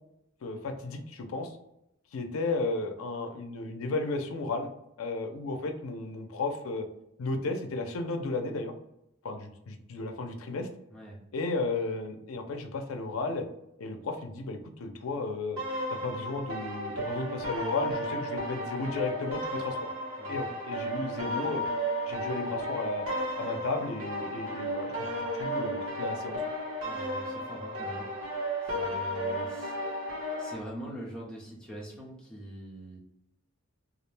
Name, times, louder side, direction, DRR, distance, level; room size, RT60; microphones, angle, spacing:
voice 1, 0.4-1.6 2.1-4.7 5.0-6.9 7.2-8.7 9.2-10.7 11.3-13.5 13.8-15.6 15.9-19.9 20.3-21.6 22.1-23.1 23.4-26.4, left 3 dB, 80° left, 5 dB, 0.4 m, -34 dB
sound 1, 15.6-30.6, equal, 90° right, 0.9 m, -34 dB
voice 2, 26.8-28.1 28.6-29.8 30.4-33.0, right 1 dB, 5° left, -5 dB, 0.6 m, -43 dB
2.4 x 2.1 x 3.1 m, 0.83 s
head